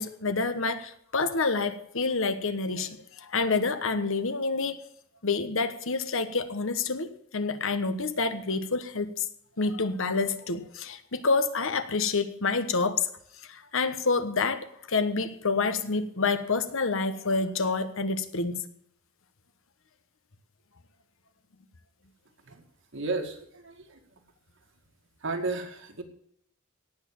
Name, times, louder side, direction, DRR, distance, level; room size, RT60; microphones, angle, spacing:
voice 1, 0.0-4.8 5.2-9.3 9.6-13.1 13.5-18.6, left 4 dB, 65° left, 10 dB, 1.2 m, -28 dB
voice 2, 22.9-24.0 25.2-26.0, right 3 dB, 60° right, 4 dB, 2.2 m, -33 dB
17.5 x 6.6 x 8.5 m, 0.68 s
head